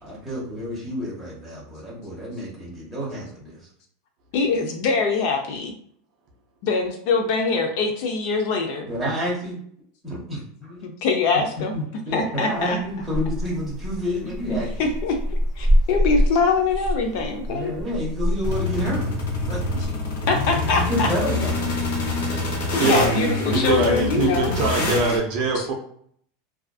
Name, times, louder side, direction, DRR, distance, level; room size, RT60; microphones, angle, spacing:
voice 1, 0.0-3.6 8.9-9.6 10.0-10.8 11.7-14.9 17.5-19.1 19.4-19.6 20.9-21.7 24.8-24.9, equal, 5° right, -8 dB, 1.1 m, -29 dB
voice 2, 4.3-5.7 6.6-8.9 10.8-11.7 12.1-12.8 14.5-15.2 15.6-17.7 19.7-19.9 20.3-21.1 22.7-24.5 25.6-25.7, left 4 dB, 50° left, 3 dB, 0.4 m, -23 dB
sound 1, 12.6-19.9, equal, 25° left, 1.1 m, -26 dB
sound 2, 18.4-25.2, left 2 dB, 75° left, 0.8 m, -25 dB
voice 3, 22.8-23.2 23.4-25.7, right 3 dB, 45° right, 1 dB, 0.5 m, -23 dB
2.4 x 2.3 x 2.3 m, 0.62 s
supercardioid pair, 165°, 0 cm